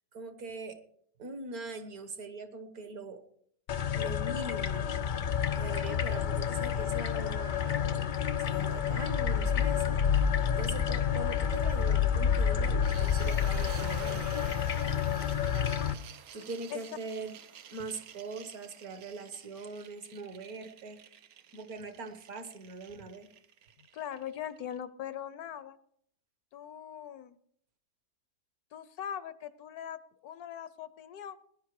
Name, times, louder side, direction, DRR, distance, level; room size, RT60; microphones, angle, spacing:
voice 1, 0.1-0.8 1.2-3.2 3.9-4.9 5.5-8.1 8.4-14.3 16.3-17.4 17.7-21.0 21.5-23.3, right 3 dB, 65° right, 9 dB, 1.8 m, -42 dB
sound 1, 3.7-15.9, left 8 dB, 90° left, 0.4 m, -29 dB
sound 2, 12.8-24.8, right 8 dB, 80° right, 1.4 m, -50 dB
voice 2, 23.8-25.8 26.5-27.4 28.7-31.4, left 9 dB, 70° left, 15 dB, 1.2 m, -41 dB
18.5 x 10.5 x 4.8 m, 0.69 s
omnidirectional pair, 1.7 m